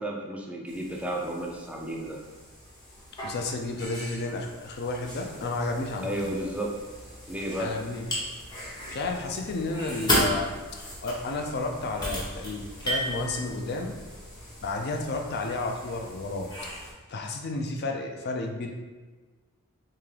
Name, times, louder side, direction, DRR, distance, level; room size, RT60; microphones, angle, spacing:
voice 1, 0.0-2.2 6.0-6.8 7.3-7.8, right 1 dB, 5° right, -1 dB, 0.4 m, -32 dB
sound 1, 0.7-16.9, equal, 20° left, 0.7 m, -35 dB
voice 2, 3.2-6.3 7.6-8.1 8.5-10.5 11.0-13.9 14.6-16.5 17.1-18.7, left 2 dB, 50° left, 3 dB, 0.4 m, -32 dB
3.6 x 2.8 x 3.2 m, 1.4 s
head